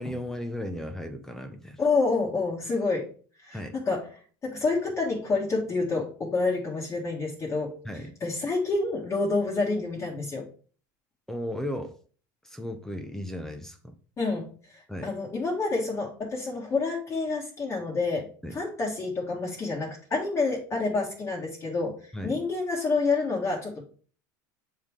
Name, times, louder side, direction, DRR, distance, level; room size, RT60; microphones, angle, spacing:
voice 1, 0.0-1.8 3.5-3.8 7.8-8.1 11.3-12.0 12.4-13.9 14.9-15.2 18.4-18.6 22.1-22.4, left 1 dB, 5° left, 7 dB, 0.7 m, -35 dB
voice 2, 1.8-3.1 3.4-4.0 4.4-7.8 8.2-10.5 14.2-23.8, left 3 dB, 30° left, -3 dB, 1.6 m, -28 dB
7.2 x 3.7 x 4.8 m, 0.42 s
supercardioid pair, 105°, 10 cm